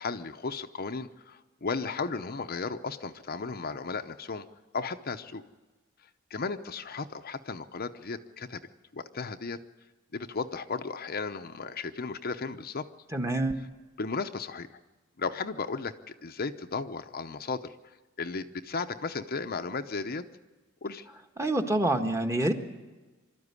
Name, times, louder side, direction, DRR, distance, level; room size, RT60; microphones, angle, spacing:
voice 1, 0.0-4.4 4.7-5.4 6.3-8.6 8.9-9.6 10.1-12.9 14.0-14.8 15.2-17.7 18.2-20.2 20.8-21.1, left 4 dB, 45° left, 7 dB, 0.8 m, -35 dB
voice 2, 13.1-13.5 21.4-22.5, right 1 dB, 15° right, 4 dB, 1.4 m, -26 dB
25.0 x 13.0 x 9.7 m, 1.3 s
head